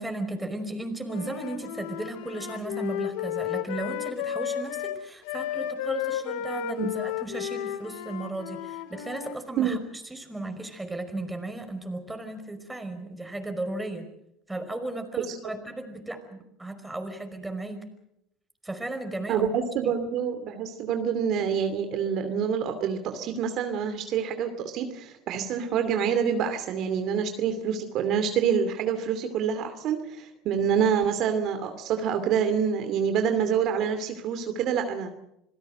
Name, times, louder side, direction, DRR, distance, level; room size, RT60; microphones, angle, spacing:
voice 1, 0.0-9.8 10.1-14.1 14.5-17.8 18.6-19.5, right 2 dB, 10° right, 6 dB, 5.2 m, -35 dB
Wind instrument woodwind instrument, 1.0-9.4, left 10 dB, 75° left, 1.9 m, -33 dB
voice 2, 19.3-35.1, right 7 dB, 60° right, 7 dB, 2.6 m, -27 dB
27.0 x 17.0 x 7.8 m, 0.79 s
hypercardioid pair, 85°, 0 cm